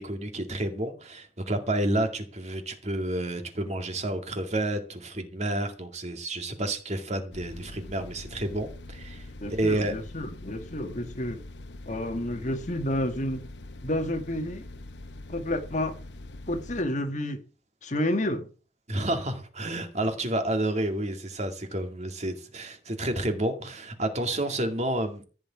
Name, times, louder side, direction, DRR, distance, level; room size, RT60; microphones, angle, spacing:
voice 1, 0.0-9.9 18.9-25.2, right 1 dB, 40° right, 2.2 m, -30 dB
sound 1, 7.3-16.8, left 2 dB, 75° left, 0.9 m, -43 dB
voice 2, 9.4-11.4 11.8-13.5 13.8-14.6 15.3-16.0 16.5-17.4 17.8-18.5, left 1 dB, 45° left, 1.6 m, -30 dB
15.5 x 5.2 x 9.4 m
head